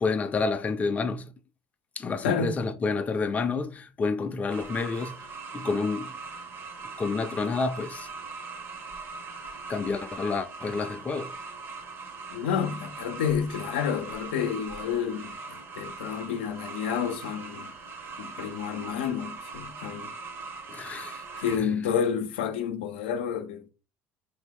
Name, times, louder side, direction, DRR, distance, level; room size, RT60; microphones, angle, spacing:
voice 1, 0.0-1.3 2.0-5.2 5.5-6.2 7.0-8.1 9.7-11.4 20.7-21.7, left 4 dB, 25° left, 0.5 m, -29 dB
voice 2, 2.2-2.5 12.3-17.7 18.2-20.1 21.4-23.7, left 7 dB, 85° left, 0.5 m, -30 dB
sound 1, 4.5-21.6, right 4 dB, 45° right, 0.7 m, -41 dB
2.8 x 2.6 x 3.6 m
hypercardioid pair, 85°, 6 cm